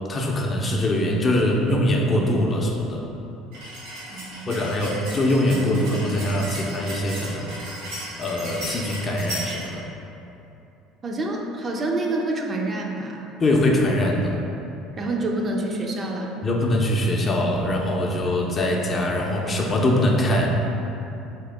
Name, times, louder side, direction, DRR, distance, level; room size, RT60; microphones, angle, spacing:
voice 1, 0.1-3.0 4.5-7.5 8.2-9.8 13.4-14.4 16.4-20.5, left 1 dB, 35° left, -1 dB, 0.5 m, -22 dB
sound 1, 3.5-9.7, right 1 dB, 80° right, 1.4 m, -35 dB
voice 2, 4.1-4.8 11.0-13.3 14.9-16.4, right 2 dB, 35° right, 0 dB, 0.5 m, -27 dB
3.4 x 2.9 x 3.3 m, 2.9 s
hypercardioid pair, 75°, 0 cm